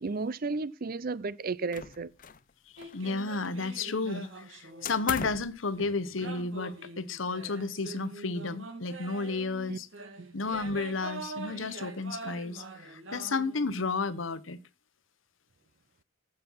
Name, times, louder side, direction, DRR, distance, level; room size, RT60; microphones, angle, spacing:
voice 1, 0.0-2.1 9.7-9.8 10.2-10.4, right 4 dB, 45° right, 0.5 m, -33 dB
sound 1, 1.7-2.5 2.8-3.7 4.8-5.6, left 7 dB, 45° left, 0.6 m, -39 dB
sound 2, 2.8-5.5 6.2-13.9, right 3 dB, 80° right, 2.3 m, -44 dB
voice 2, 2.9-9.9 10.3-14.6, left 3 dB, 80° left, 1.0 m, -32 dB
14.5 x 6.3 x 5.6 m
head